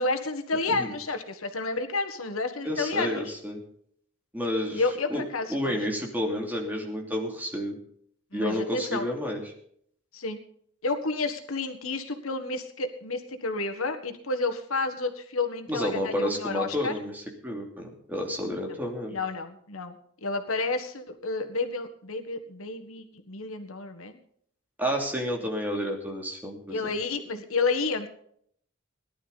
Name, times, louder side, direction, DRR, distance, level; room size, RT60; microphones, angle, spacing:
voice 1, 0.0-3.2 4.7-5.8 8.3-9.1 10.1-10.4 10.8-16.9 19.1-19.9 20.2-24.2 26.7-28.1, left 3 dB, 80° left, 7 dB, 1.6 m, -30 dB
voice 2, 2.6-3.6 4.3-4.8 5.1-5.2 5.5-7.8 8.3-9.4 15.7-19.2 24.8-26.9, equal, 10° right, 1 dB, 2.9 m, -30 dB
18.5 x 11.5 x 4.2 m, 0.65 s
head